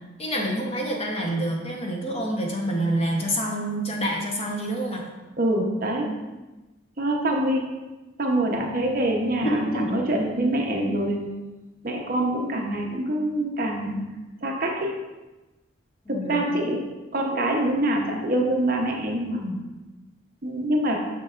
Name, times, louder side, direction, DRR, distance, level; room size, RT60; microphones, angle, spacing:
voice 1, 0.2-5.0 9.4-10.0 16.1-16.6, right 1 dB, 30° left, 0 dB, 0.9 m, -27 dB
voice 2, 5.4-6.1 7.0-7.7 8.2-11.3 11.8-14.0 14.4-14.9 16.1-16.8 17.1-19.6 20.4-21.0, right 1 dB, 45° right, 0 dB, 0.8 m, -25 dB
6.5 x 6.2 x 2.5 m, 1.1 s
head